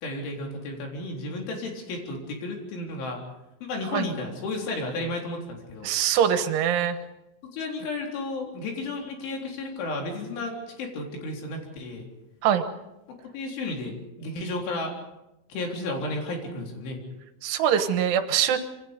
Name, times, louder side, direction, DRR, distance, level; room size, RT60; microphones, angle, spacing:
voice 1, 0.0-3.2 3.6-5.9 7.4-12.1 13.1-14.9 15.5-17.0, left 2 dB, 75° left, 1 dB, 6.1 m, -33 dB
voice 2, 5.8-7.0 12.4-12.7 17.4-18.6, right 9 dB, 75° right, 8 dB, 3.7 m, -23 dB
26.5 x 24.5 x 5.3 m, 0.90 s
omnidirectional pair, 5.6 m